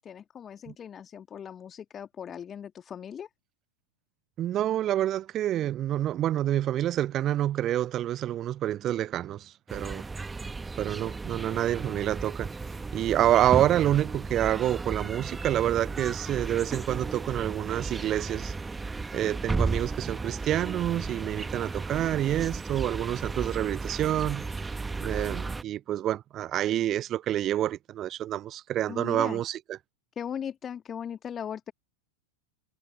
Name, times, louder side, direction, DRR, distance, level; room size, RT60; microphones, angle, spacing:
voice 1, 0.0-3.3 28.9-29.4 30.2-31.7, left 8 dB, 25° left, 1.9 m, -38 dB
voice 2, 4.4-10.0 10.8-12.5 12.9-18.5 19.1-24.5 25.0-29.8, right 12 dB, 30° right, 0.4 m, -28 dB
sound 1, 9.7-25.6, right 3 dB, 10° right, 1.5 m, -34 dB
figure-of-eight pair, 90°, 0 cm